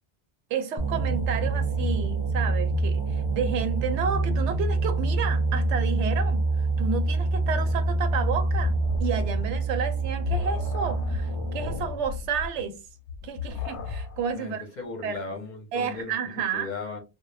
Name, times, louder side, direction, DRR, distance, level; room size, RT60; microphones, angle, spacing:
voice 1, 0.5-6.4 6.8-12.8 13.2-14.7 15.0-15.3 15.7-16.7, right 6 dB, 85° right, 0.9 m, -31 dB
sound 1, 0.8-12.0, right 3 dB, 50° right, 0.3 m, -26 dB
sound 2, 7.2-14.3, left 6 dB, 90° left, 0.9 m, -36 dB
voice 2, 14.3-16.1 16.5-17.0, left 3 dB, 50° left, 0.6 m, -36 dB
2.1 x 2.1 x 3.0 m
omnidirectional pair, 1.1 m